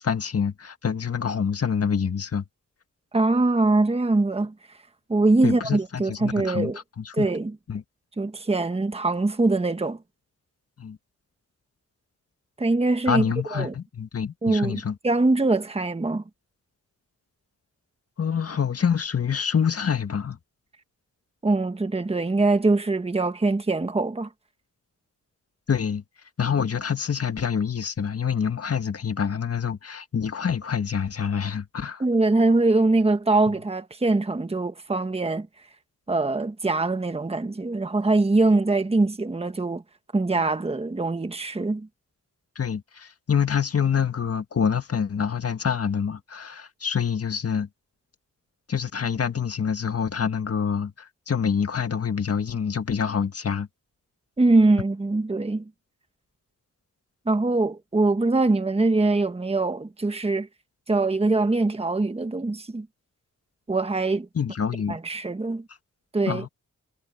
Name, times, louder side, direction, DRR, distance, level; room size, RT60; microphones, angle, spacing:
voice 1, 0.0-2.4 5.4-6.7 7.0-7.3 7.7-7.8 10.8-11.0 13.1-15.0 18.2-20.4 25.7-26.0 26.4-32.0 42.6-47.7 48.7-53.7 64.4-65.0 66.3-66.5, left 7 dB, 45° left, 1.7 m, -26 dB
voice 2, 3.1-4.5 5.1-6.8 7.1-7.5 8.2-10.0 12.6-13.3 13.5-13.7 14.4-16.2 21.4-24.3 32.0-35.5 36.1-39.8 40.1-41.9 54.4-55.6 57.2-60.5 60.9-62.9 63.7-64.3 64.9-65.6 66.1-66.4, right 2 dB, 20° right, 1.4 m, -23 dB
cardioid pair, 95°, 32 cm